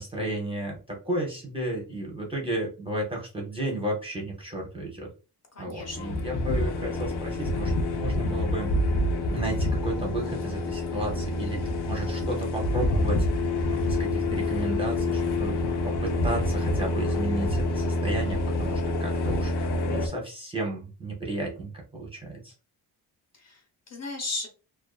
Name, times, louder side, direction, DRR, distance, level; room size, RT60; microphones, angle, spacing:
voice 1, 0.0-5.1 5.6-8.7 9.3-15.6 15.8-22.5, right 1 dB, 15° right, -2 dB, 0.5 m, -33 dB
voice 2, 5.5-6.2 23.3-24.5, left 3 dB, 40° left, 1 dB, 0.8 m, -36 dB
sound 1, 5.8-20.1, left 2 dB, 70° left, 0.6 m, -27 dB
2.5 x 2.3 x 2.3 m, 0.34 s
wide cardioid pair, 145°, 40 cm